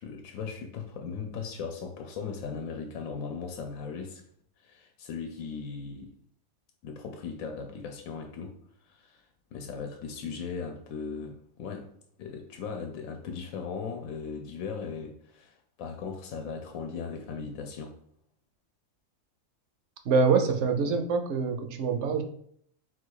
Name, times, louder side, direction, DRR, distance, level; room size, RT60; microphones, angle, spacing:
voice 1, 0.0-4.2 4.6-6.1 6.8-9.3 9.5-11.9 12.2-18.0, left 5 dB, 90° left, 4 dB, 1.0 m, -38 dB
voice 2, 20.1-22.2, right 5 dB, 65° right, 6 dB, 0.8 m, -25 dB
4.0 x 2.3 x 4.6 m, 0.66 s
omnidirectional pair, 1.4 m